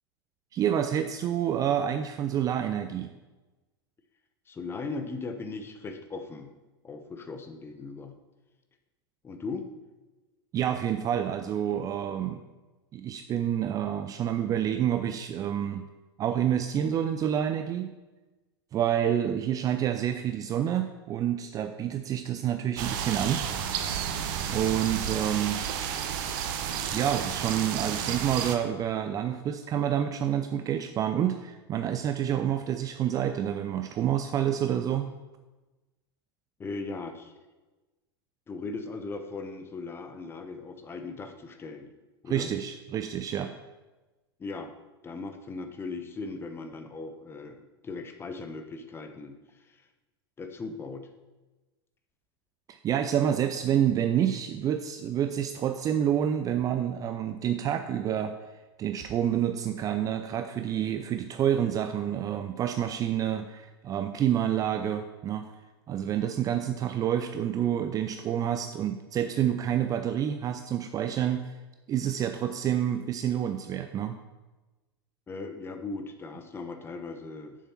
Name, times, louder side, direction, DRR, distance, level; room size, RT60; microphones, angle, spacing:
voice 1, 0.5-3.1 10.5-12.4 12.9-15.8 16.2-17.9 18.7-23.4 24.5-25.7 26.9-35.1 42.3-43.5 52.7-58.3 58.8-65.5 65.9-71.5 71.9-74.2, right 10 dB, 25° right, 8 dB, 0.5 m, -28 dB
voice 2, 4.5-6.5 6.8-8.1 9.2-9.6 36.6-37.3 38.5-41.9 42.2-42.5 44.4-44.7 45.0-49.8 50.4-51.1 75.3-77.6, left 3 dB, 15° left, 7 dB, 1.0 m, -38 dB
sound 1, 22.8-28.6, right 8 dB, 50° right, 1.0 m, -31 dB
7.3 x 6.9 x 5.7 m, 1.2 s
figure-of-eight pair, 90°, 13 cm